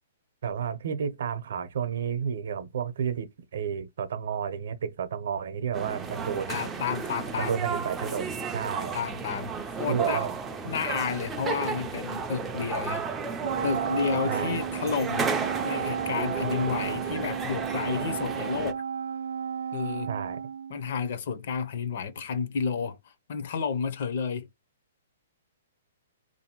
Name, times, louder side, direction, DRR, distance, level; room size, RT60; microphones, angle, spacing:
voice 1, 0.4-6.6 7.4-9.0 9.9-10.3 14.3-14.5 20.1-20.4, right 7 dB, 55° right, 0.7 m, -31 dB
sound 1, 5.7-18.7, right 5 dB, 10° right, 0.3 m, -33 dB
voice 2, 6.5-7.6 8.9-10.3 10.6-13.1 13.6-15.3 15.6-18.8 19.7-20.1 20.7-24.5, left 6 dB, 40° left, 0.5 m, -31 dB
Wind instrument woodwind instrument, 13.4-21.1, right 7 dB, 85° right, 0.3 m, -33 dB
3.8 x 2.6 x 2.9 m
hypercardioid pair, 180°, 0 cm